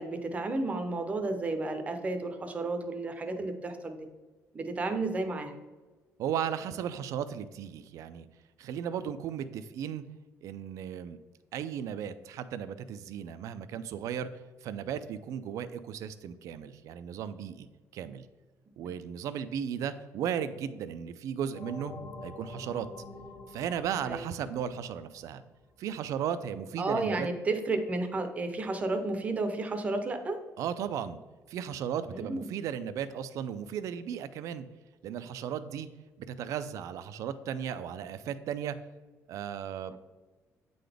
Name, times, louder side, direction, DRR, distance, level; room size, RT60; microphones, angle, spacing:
voice 1, 0.0-4.1 4.5-5.6 24.0-24.3 26.8-30.4 32.1-32.4 39.9-40.0, right 2 dB, 25° right, 7 dB, 0.6 m, -32 dB
voice 2, 6.2-8.3 8.6-10.0 10.4-11.2 11.5-14.3 14.6-17.7 17.9-18.3 18.8-21.9 22.2-22.9 23.5-25.4 25.8-27.3 30.6-31.2 31.5-34.6 35.0-35.9 36.2-38.8 39.3-40.0, right 8 dB, 65° right, 12 dB, 0.4 m, -35 dB
sound 1, 21.5-25.9, left 2 dB, 65° left, 0.9 m, -47 dB
8.4 x 3.9 x 3.4 m, 1.3 s
cardioid pair, 160°, 6 cm